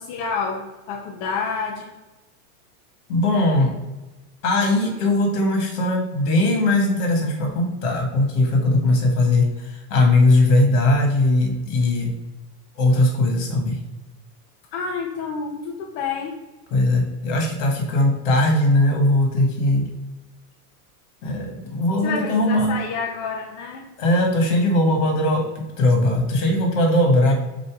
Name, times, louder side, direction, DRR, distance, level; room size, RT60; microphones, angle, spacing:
voice 1, 0.0-1.9 14.7-16.3 22.0-23.9, left 5 dB, 35° left, 0 dB, 0.7 m, -29 dB
voice 2, 3.1-3.7 4.4-12.1 12.8-13.8 16.7-19.9 21.2-22.8 24.0-27.3, left 1 dB, 55° left, 2 dB, 1.9 m, -19 dB
6.8 x 3.0 x 4.7 m, 1.1 s
supercardioid pair, 150°, 44 cm